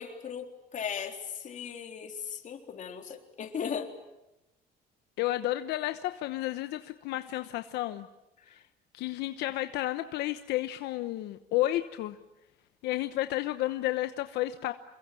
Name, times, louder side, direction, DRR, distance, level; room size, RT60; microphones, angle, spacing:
voice 1, 0.0-3.9, left 7 dB, 50° left, 4 dB, 3.8 m, -37 dB
voice 2, 5.2-8.1 8.5-8.6 8.9-12.2 12.8-14.7, left 15 dB, 85° left, 9 dB, 1.1 m, -31 dB
27.5 x 22.5 x 9.2 m, 0.94 s
cardioid pair, 110°, 17 cm